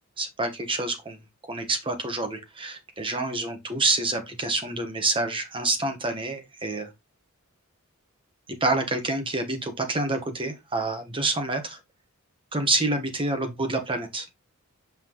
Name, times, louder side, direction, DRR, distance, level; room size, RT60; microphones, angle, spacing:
voice 1, 0.2-1.2 1.5-6.9 8.5-11.8 12.5-14.2, right 2 dB, 25° right, 1.3 m, -27 dB
5.9 x 5.8 x 3.0 m
head